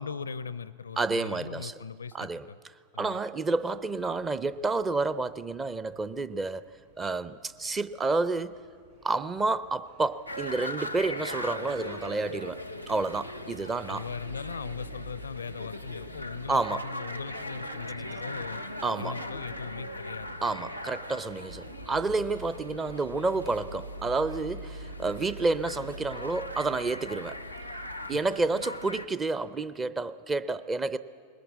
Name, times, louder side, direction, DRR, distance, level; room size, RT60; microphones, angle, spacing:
voice 1, 0.0-2.6 2.9-3.2 13.6-18.6 19.0-20.3 28.1-28.2, left 6 dB, 70° left, 20 dB, 0.5 m, -39 dB
voice 2, 1.0-1.7 2.1-2.5 3.0-6.6 7.0-8.6 9.0-14.0 16.5-16.8 18.8-19.2 20.4-27.4 28.1-31.0, right 3 dB, 15° right, 15 dB, 0.6 m, -30 dB
sound 1, 3.5-22.2, right 4 dB, 70° right, 7.4 m, -59 dB
sound 2, 10.3-29.1, left 1 dB, 90° right, 0.9 m, -39 dB
21.5 x 19.5 x 8.3 m, 2.1 s
figure-of-eight pair, 90°, 0 cm